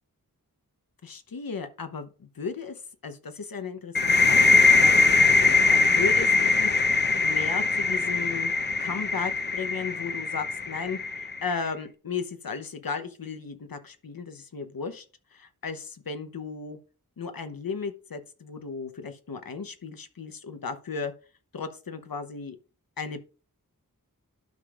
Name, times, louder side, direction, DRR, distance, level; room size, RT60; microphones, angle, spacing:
voice 1, 1.0-5.4 5.7-6.8 7.2-8.5 8.8-15.0 15.3-16.8 17.2-21.1 21.5-22.6 23.0-23.2, left 5 dB, 75° left, 8 dB, 0.9 m, -35 dB
sound 1, 3.9-11.5, left 3 dB, 30° left, 0.7 m, -21 dB
12.0 x 5.2 x 2.5 m, 0.35 s
wide cardioid pair, 50°, 35 cm